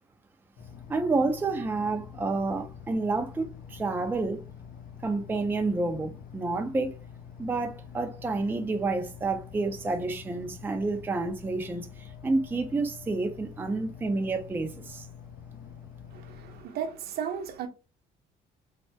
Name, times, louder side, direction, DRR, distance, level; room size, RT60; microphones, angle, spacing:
sound 1, 0.6-16.6, left 8 dB, 60° left, 0.5 m, -46 dB
voice 1, 0.9-4.4 5.0-7.0 7.4-15.1, right 3 dB, 10° right, 0.4 m, -29 dB
voice 2, 16.1-17.7, right 8 dB, 70° right, 0.7 m, -35 dB
3.3 x 2.0 x 2.6 m
cardioid pair, 110°, 17 cm